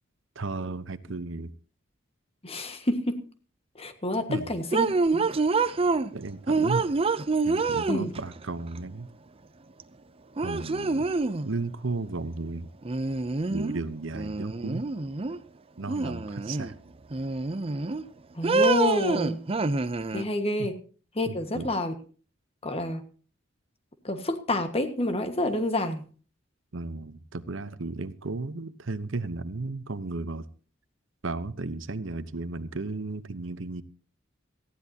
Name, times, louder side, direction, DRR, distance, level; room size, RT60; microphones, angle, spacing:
voice 1, 0.4-1.5 4.3-4.5 6.1-6.9 7.4-9.1 10.4-11.1 11.4-12.7 13.5-14.9 15.8-16.7 20.6-20.7 21.3-21.7 26.7-30.5 31.2-33.8, right 3 dB, 75° right, 14 dB, 0.9 m, -34 dB
voice 2, 2.4-3.2 3.8-5.3 7.9-8.1 18.3-19.4 20.1-20.8 21.1-21.9 22.6-23.0 24.0-26.0, left 1 dB, 30° left, 8 dB, 1.6 m, -28 dB
sound 1, 4.7-6.1 6.5-8.4 9.8-9.9 10.4-11.5 12.8-13.8 14.1-15.4 15.9-16.7 17.1-18.0 18.4-20.2, right 3 dB, 30° right, 0.6 m, -26 dB
18.5 x 15.0 x 2.9 m, 0.39 s
head